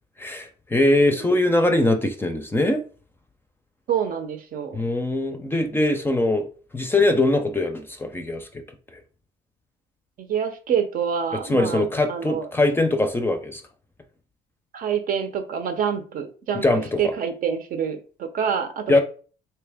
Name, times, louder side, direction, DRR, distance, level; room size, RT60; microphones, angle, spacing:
voice 1, 0.2-2.8 4.7-6.5 6.7-8.6 11.5-13.6 16.6-17.1 18.9-19.0, left 2 dB, 15° left, 6 dB, 0.5 m, -22 dB
voice 2, 3.9-4.8 10.2-12.5 14.7-19.0, right 7 dB, 55° right, 7 dB, 0.7 m, -27 dB
3.2 x 2.8 x 3.5 m, 0.38 s
cardioid pair, 110°, 17 cm